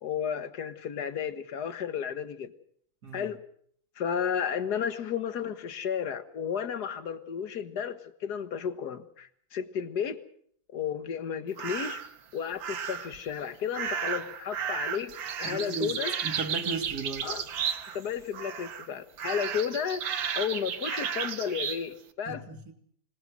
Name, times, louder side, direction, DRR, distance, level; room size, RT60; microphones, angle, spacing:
voice 1, 0.0-2.5 3.1-3.4 4.0-10.2 10.7-12.0 12.3-15.1 15.4-16.1 17.2-17.5 17.9-20.0 20.3-22.4, left 7 dB, 50° left, 1.9 m, -33 dB
sound 1, 11.6-12.1 12.6-13.2 13.7-18.1 18.3-18.9 19.2-21.8, right 7 dB, 65° right, 2.0 m, -33 dB
voice 2, 15.4-15.9 16.2-17.3 22.3-22.7, right 4 dB, 50° right, 3.2 m, -36 dB
25.5 x 20.0 x 6.3 m
omnidirectional pair, 2.3 m